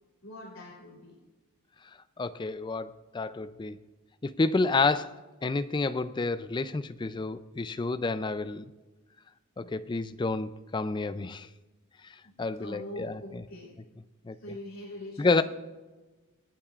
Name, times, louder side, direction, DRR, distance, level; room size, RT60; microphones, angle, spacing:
voice 1, 0.2-1.1 9.6-9.8 12.2-12.3 12.6-13.8 14.4-15.3, left 1 dB, 60° left, 3.5 m, -43 dB
voice 2, 2.2-3.8 4.2-8.6 9.6-11.5 12.4-13.4 14.3-14.4 15.2-15.4, left 3 dB, 20° left, 0.3 m, -29 dB
26.0 x 8.7 x 2.4 m
head